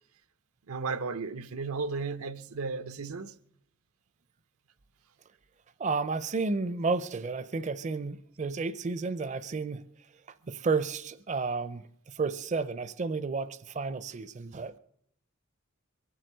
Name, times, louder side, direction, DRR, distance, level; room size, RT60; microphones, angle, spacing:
voice 1, 0.7-3.3, right 4 dB, 85° right, 0.7 m, -34 dB
voice 2, 5.8-9.8 10.5-14.8, right 4 dB, 35° right, 0.5 m, -32 dB
23.0 x 7.8 x 6.6 m
head